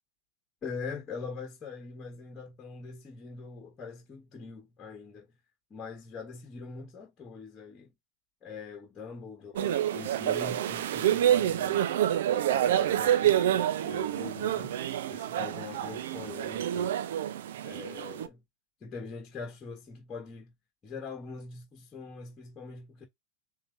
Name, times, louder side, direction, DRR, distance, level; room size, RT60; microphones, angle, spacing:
voice 1, 0.6-5.3 5.7-7.9 8.4-14.7 15.1-16.9 17.6-18.4 18.8-20.5 20.8-23.1, left 5 dB, 30° left, 1.7 m, -43 dB
sound 1, 9.6-18.3, right 11 dB, 70° right, 0.6 m, -28 dB
7.1 x 2.8 x 2.5 m
hypercardioid pair, 95°, 0 cm